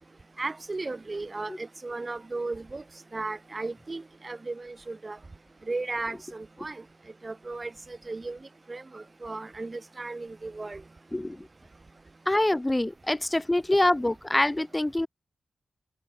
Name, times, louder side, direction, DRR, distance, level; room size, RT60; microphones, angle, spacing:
voice 1, 0.4-2.8 3.1-5.2 5.7-6.8 7.2-8.4 8.7-10.8, right 3 dB, 40° right, 3.0 m, -35 dB
voice 2, 11.1-11.5 12.3-15.1, left 1 dB, 20° left, 2.8 m, -25 dB
cardioid pair, 50°, 0 cm